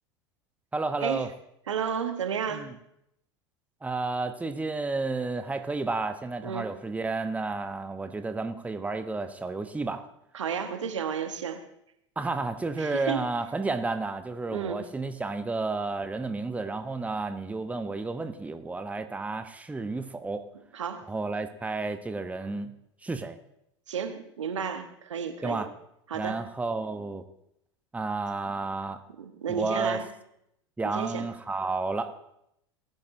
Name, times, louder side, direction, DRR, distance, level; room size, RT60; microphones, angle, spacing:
voice 1, 0.7-1.3 2.5-2.7 3.8-10.0 12.2-20.4 21.1-22.7 23.0-23.4 25.4-25.7 26.1-27.2 27.9-29.0 29.5-30.0 30.8-32.3, right 3 dB, 10° right, 8 dB, 0.9 m, -31 dB
voice 2, 1.7-2.7 6.4-6.7 10.3-11.6 12.8-13.2 14.5-14.8 20.7-21.0 23.9-25.7 26.1-26.4 29.2-30.0 30.8-31.3, right 7 dB, 80° right, 7 dB, 1.2 m, -32 dB
19.5 x 10.5 x 2.7 m, 0.77 s
figure-of-eight pair, 85°, 15 cm